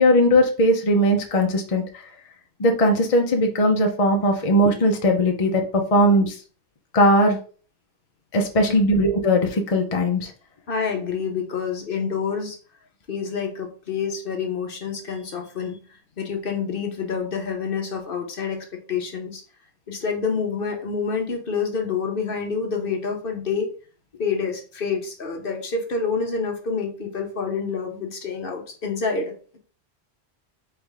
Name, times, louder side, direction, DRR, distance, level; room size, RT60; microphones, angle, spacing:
voice 1, 0.0-1.8 2.6-5.6 5.9-6.3 6.9-7.4 8.3-10.3, equal, 35° left, 2 dB, 0.7 m, -19 dB
voice 2, 10.7-12.6 13.1-15.8 16.2-18.6 18.9-19.4 19.9-23.7 24.2-29.3, left 5 dB, 60° left, 3 dB, 1.1 m, -27 dB
4.1 x 3.4 x 3.5 m, 0.39 s
omnidirectional pair, 1.1 m